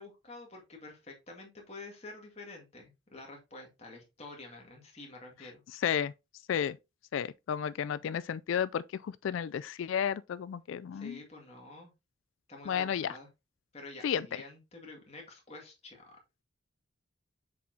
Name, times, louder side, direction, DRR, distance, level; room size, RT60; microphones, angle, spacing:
voice 1, 0.0-5.6 10.9-11.9 12.5-13.3 13.7-16.2, left 2 dB, 30° left, 2.0 m, -48 dB
voice 2, 5.8-6.1 6.5-6.8 7.1-11.2 12.7-13.1 14.0-14.3, left 8 dB, 70° left, 0.3 m, -32 dB
6.9 x 4.9 x 2.8 m
head